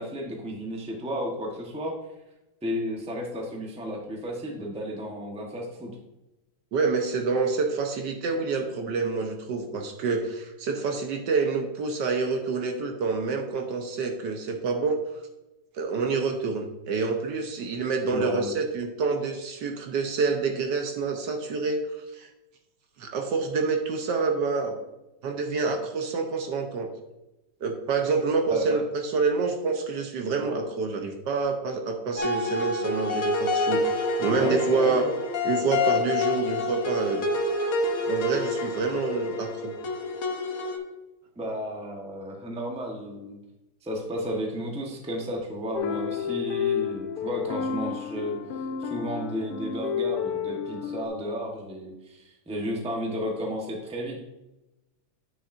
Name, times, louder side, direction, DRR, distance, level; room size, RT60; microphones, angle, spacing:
voice 1, 0.0-1.9 2.6-5.9 18.1-18.5 28.5-28.8 34.4-35.1 41.4-43.4 43.8-48.4 48.8-54.2, equal, 5° right, 0 dB, 0.8 m, -33 dB
voice 2, 6.7-15.0 15.7-22.3 23.0-24.8 25.2-26.9 27.6-35.0 35.4-37.3 38.1-39.7, right 4 dB, 65° right, 4 dB, 1.4 m, -27 dB
sound 1, 32.2-40.8, left 2 dB, 55° left, 1.3 m, -28 dB
sound 2, 45.8-51.1, left 7 dB, 70° left, 1.0 m, -30 dB
9.3 x 6.7 x 2.6 m, 0.97 s
omnidirectional pair, 2.1 m